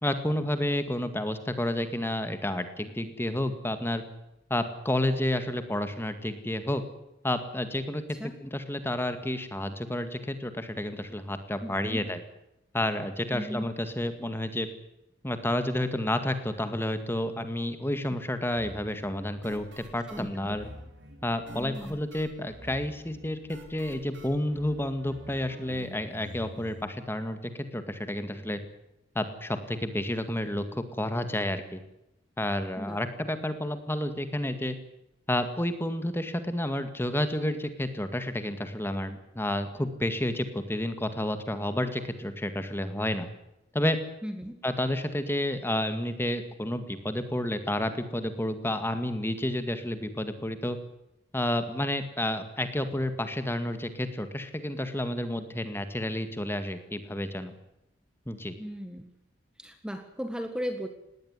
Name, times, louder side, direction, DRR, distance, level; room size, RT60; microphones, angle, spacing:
voice 1, 0.0-4.0 4.5-6.8 7.2-12.2 12.7-14.7 15.2-20.7 21.2-27.4 27.7-28.6 29.2-31.8 32.4-34.8 35.3-43.3 43.7-44.0 44.6-50.8 51.3-57.5 58.3-58.5, left 1 dB, 15° left, 9 dB, 2.0 m, -30 dB
voice 2, 11.6-12.1 13.3-13.6 20.1-20.6 21.5-22.0 32.8-33.0 44.2-44.5 58.6-59.0 59.6-60.9, equal, 5° right, 7 dB, 1.7 m, -36 dB
sound 1, 18.6-26.8, equal, 80° right, 4.6 m, -47 dB
20.0 x 17.5 x 9.7 m, 0.85 s
head